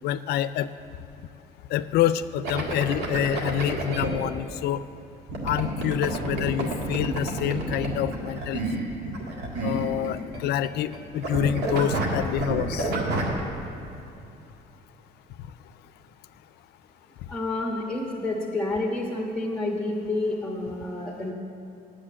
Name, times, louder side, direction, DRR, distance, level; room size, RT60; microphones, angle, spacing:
voice 1, 0.0-0.7 1.7-4.8 5.4-8.6 9.6-12.9, left 11 dB, 75° left, 14 dB, 0.4 m, -27 dB
sound 1, 2.4-4.1 5.3-10.4 10.6-11.0 11.2-13.4, right 2 dB, 80° right, 1.8 m, -29 dB
voice 2, 17.3-21.3, left 2 dB, 5° left, -3 dB, 1.3 m, -29 dB
8.7 x 7.5 x 8.6 m, 2.7 s
cardioid pair, 110°, 17 cm